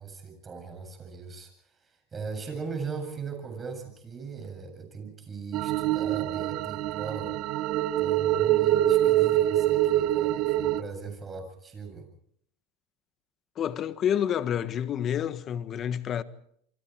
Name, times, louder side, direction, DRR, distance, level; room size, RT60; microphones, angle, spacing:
voice 1, 0.0-7.4 7.7-12.1, right 5 dB, 25° right, 7.8 m, -39 dB
sound 1, 5.5-10.8, right 13 dB, 55° right, 0.9 m, -25 dB
voice 2, 13.6-16.2, left 9 dB, 40° left, 1.4 m, -28 dB
28.0 x 24.0 x 4.7 m
supercardioid pair, 110°, 0 cm